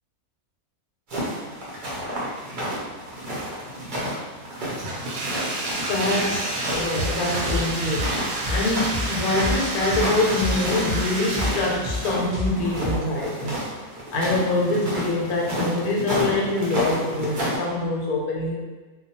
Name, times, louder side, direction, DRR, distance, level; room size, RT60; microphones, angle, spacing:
sound 1, 1.1-17.6, equal, 55° right, 0.5 m, -31 dB
Bathtub (filling or washing), 4.7-12.0, right 2 dB, 85° right, 1.0 m, -30 dB
voice 1, 5.7-13.6 14.1-18.5, left 2 dB, 85° left, -2 dB, 1.1 m, -25 dB
sound 2, 6.7-13.0, left 2 dB, 20° left, 0.8 m, -30 dB
2.3 x 2.2 x 2.8 m, 1.3 s
omnidirectional pair, 1.5 m